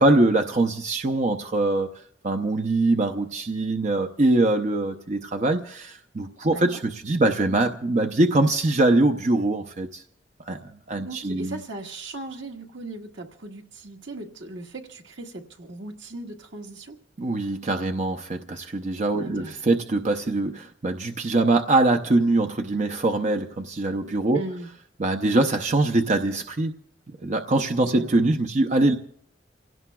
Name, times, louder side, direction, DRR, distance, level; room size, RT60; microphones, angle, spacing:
voice 1, 0.0-1.9 2.2-10.0 10.5-11.6 17.2-24.4 25.0-26.7 27.2-28.9, right 2 dB, 40° right, 5 dB, 0.7 m, -23 dB
voice 2, 6.5-6.8 11.0-17.0 19.2-19.5 24.3-24.7 27.9-28.3, right 2 dB, 80° right, 2 dB, 1.6 m, -38 dB
29.0 x 17.0 x 2.3 m, 0.68 s
head